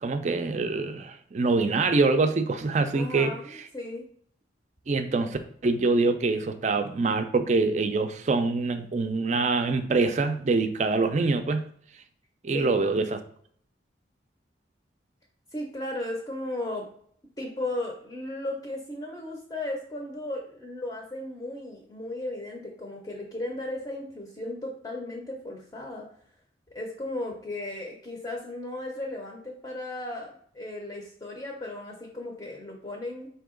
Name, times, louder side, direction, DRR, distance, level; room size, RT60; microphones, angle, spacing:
voice 1, 0.0-3.3 4.9-11.6 12.4-13.2, right 3 dB, 40° right, 9 dB, 0.4 m, -25 dB
voice 2, 2.9-4.0 12.5-12.8 15.5-16.9 17.4-26.1 26.7-33.3, left 1 dB, 20° left, 0 dB, 0.6 m, -35 dB
4.5 x 2.8 x 3.7 m, 0.63 s
head